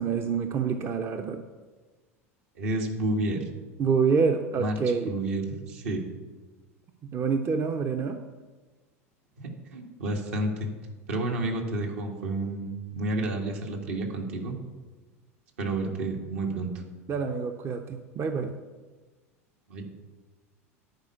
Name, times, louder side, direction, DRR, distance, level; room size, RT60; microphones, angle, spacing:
voice 1, 0.0-1.4 3.8-5.1 7.0-8.2 17.1-18.5, right 5 dB, 30° right, 6 dB, 0.7 m, -27 dB
voice 2, 2.6-3.5 4.6-4.8 5.1-6.0 9.4-10.7 11.1-14.6 15.6-16.7 19.7-19.8, right 2 dB, 65° right, 1 dB, 1.9 m, -30 dB
10.5 x 5.0 x 8.3 m, 1.3 s
figure-of-eight pair, 80°, 8 cm